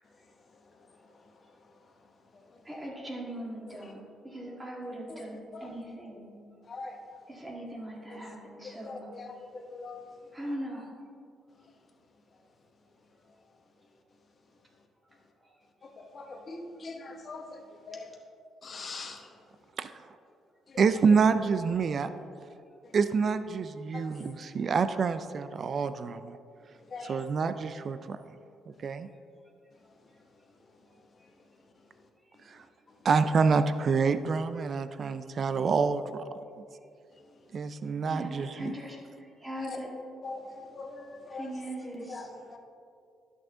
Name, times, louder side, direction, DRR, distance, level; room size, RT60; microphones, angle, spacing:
voice 1, 2.6-6.3 7.3-9.1 10.3-10.9 15.5-15.6 38.1-39.9 41.3-42.3, equal, 15° right, -2 dB, 1.8 m, -40 dB
voice 2, 6.7-7.0 8.1-8.2 8.8-10.0 15.8-17.6 17.9-18.1 18.6-19.3 20.7-20.8 22.8-22.9 23.9-24.1 26.9-27.2 39.7-39.8 40.2-41.5 42.1-42.6, left 3 dB, 45° left, 3 dB, 1.1 m, -42 dB
voice 3, 20.8-22.1 22.9-26.4 27.0-28.2 28.8-29.1 32.5-32.6 33.0-36.2 37.5-38.7, right 5 dB, 50° right, 11 dB, 0.4 m, -27 dB
10.5 x 6.5 x 3.7 m, 2.4 s
cardioid pair, 90°, 0 cm